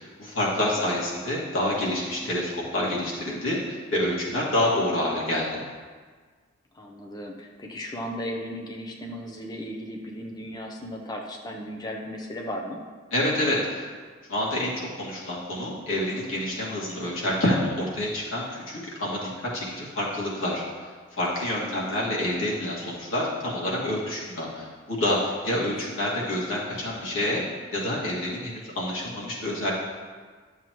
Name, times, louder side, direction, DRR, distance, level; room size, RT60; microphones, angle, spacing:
voice 1, 0.0-5.5 13.1-13.8 14.3-20.6 21.2-27.4 27.7-29.7, left 1 dB, 80° left, -6 dB, 2.3 m, -27 dB
voice 2, 0.6-1.0 6.7-12.8 21.6-22.1 25.5-25.7, equal, 20° left, 0 dB, 0.7 m, -36 dB
12.0 x 7.2 x 3.1 m, 1.5 s
head